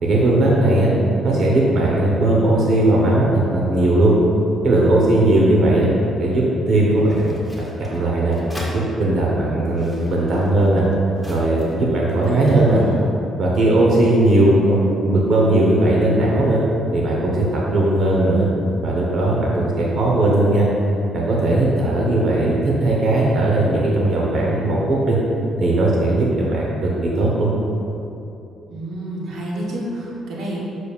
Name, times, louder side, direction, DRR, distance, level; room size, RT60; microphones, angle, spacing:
voice 1, 0.0-0.9 1.2-4.1 4.6-5.9 6.2-8.4 8.7-10.9 11.3-12.8 13.4-16.6 16.9-18.5 18.8-20.7 21.1-25.2 25.6-27.5, right 1 dB, 60° right, -4 dB, 1.1 m, -18 dB
sound 1, 7.0-8.8 9.5-11.9 12.2-12.9, equal, ahead, 1.4 m, -39 dB
voice 2, 12.2-13.0 28.7-30.6, right 1 dB, 80° right, -4 dB, 1.2 m, -29 dB
7.1 x 6.3 x 2.5 m, 2.8 s
cardioid pair, 90°, 0 cm